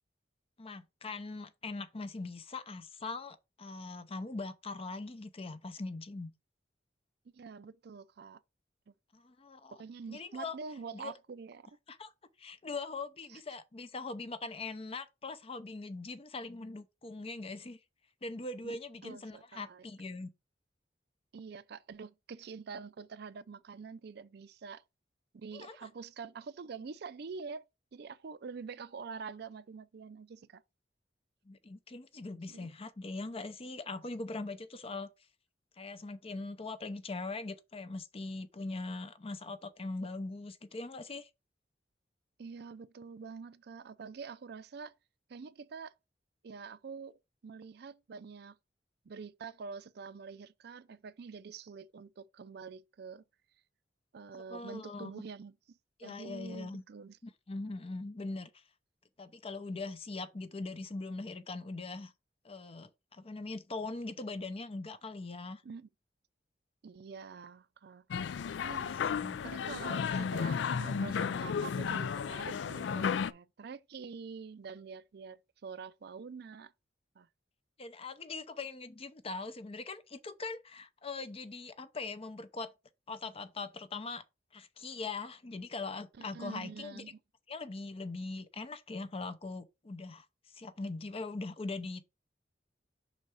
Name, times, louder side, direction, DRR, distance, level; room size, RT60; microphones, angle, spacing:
voice 1, 0.6-6.3 9.1-9.8 10.1-10.6 10.9-11.1 11.9-12.1 12.4-17.8 18.2-20.3 25.5-25.8 31.5-35.1 35.8-41.3 54.3-55.2 56.0-56.8 57.2-58.6 59.2-62.1 62.4-65.6 68.7-69.4 77.8-82.7 83.1-84.2 84.5-87.0 87.5-92.0, left 3 dB, 35° left, 0.6 m, -41 dB
voice 2, 7.3-8.4 8.9-9.0 9.7-11.8 13.3-13.4 18.6-19.9 21.3-24.8 25.3-27.7 27.9-30.6 32.5-32.7 42.4-44.9 45.3-45.9 46.4-48.6 49.0-53.2 54.1-57.2 65.6-65.9 66.8-68.1 68.6-69.0 69.4-76.7 77.2-77.3 86.2-87.2, right 5 dB, 65° right, 0.4 m, -46 dB
sound 1, 68.1-73.3, left 6 dB, 80° left, 0.4 m, -33 dB
5.6 x 4.0 x 4.8 m
head